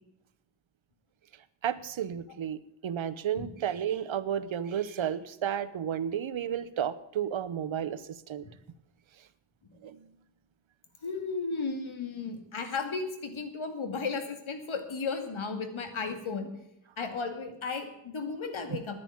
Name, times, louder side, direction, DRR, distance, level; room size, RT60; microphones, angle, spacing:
voice 1, 1.6-8.0 8.3-8.5 9.8-10.1 18.7-18.8, right 9 dB, 70° right, 15 dB, 0.9 m, -32 dB
voice 2, 11.0-16.5 17.0-19.0, left 4 dB, 70° left, 7 dB, 2.2 m, -34 dB
10.0 x 9.9 x 8.7 m, 0.83 s
wide cardioid pair, 95°, 49 cm